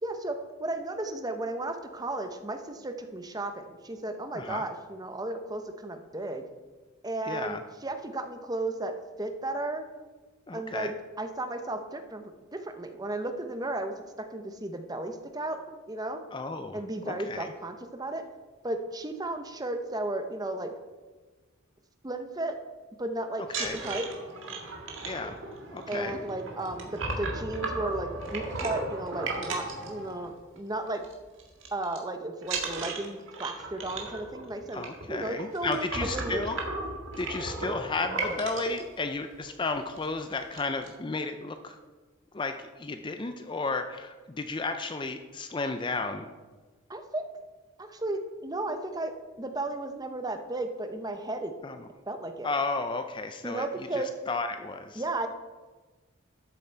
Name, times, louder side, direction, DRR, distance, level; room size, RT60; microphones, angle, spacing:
voice 1, 0.0-6.4 7.0-7.6 7.8-9.8 10.5-10.9 11.2-15.6 15.9-16.2 16.7-18.2 18.6-20.7 22.0-22.6 23.0-23.4 23.8-24.1 25.9-31.0 31.7-36.5 46.9-47.2 47.8-51.5 52.1-52.5 53.4-54.1 54.9-55.3, right 2 dB, 20° right, 7 dB, 0.7 m, -34 dB
voice 2, 4.3-4.6 7.3-7.6 10.5-10.9 16.3-16.8 17.1-17.5 23.5-23.8 25.0-25.4 25.7-26.2 34.7-36.6 37.2-41.8 42.3-46.3 51.6-51.8 52.4-53.7 53.9-55.0, left 3 dB, 20° left, 7 dB, 0.4 m, -33 dB
sound 1, 23.4-30.6 30.9-31.1 31.4-32.0 32.4-38.8 39.5-39.6 39.9-40.1 40.3-40.9, right 3 dB, 60° right, 1.9 m, -35 dB
13.0 x 7.5 x 4.5 m, 1.3 s
head